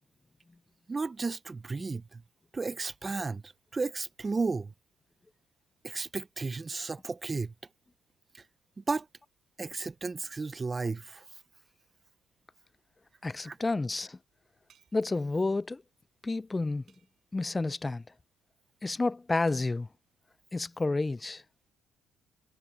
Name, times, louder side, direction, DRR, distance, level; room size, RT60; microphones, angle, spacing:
voice 1, 0.9-2.2 2.5-4.7 5.8-7.5 8.3-8.4 8.9-9.1 9.6-11.2 13.4-13.6, right 4 dB, 25° right, 0.7 m, -33 dB
voice 2, 13.2-14.2 14.9-15.8 16.2-16.8 17.3-18.0 18.8-19.9 20.5-21.4, left 3 dB, 20° left, 0.4 m, -30 dB
sound 1, 14.7-15.2 16.9-17.4 19.5-19.7, right 9 dB, 60° right, 7.6 m, -66 dB
cardioid pair, 95°, 0 cm